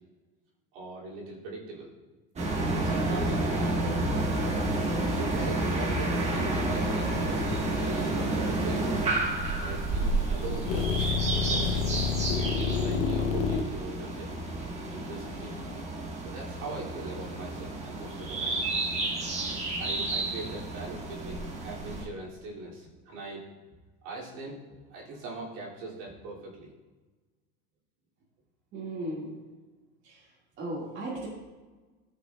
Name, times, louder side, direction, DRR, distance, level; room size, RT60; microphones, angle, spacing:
voice 1, 0.7-1.9 2.7-3.8 5.1-9.1 9.6-12.0 12.6-14.3 14.9-15.6 16.2-18.6 19.8-23.4 24.0-24.6 24.9-26.7, right 2 dB, 60° right, -5 dB, 2.7 m, -41 dB
sound 1, 2.4-22.0, right 2 dB, 20° right, 1.3 m, -30 dB
sound 2, 4.1-12.4, left 2 dB, 70° left, 2.1 m, -42 dB
sound 3, 10.7-15.8, left 5 dB, 45° left, 0.8 m, -29 dB
voice 2, 28.7-29.3 30.0-30.2 30.6-31.3, right 1 dB, 40° right, -6 dB, 2.0 m, -35 dB
13.5 x 5.8 x 2.3 m, 1.3 s
supercardioid pair, 135°, 31 cm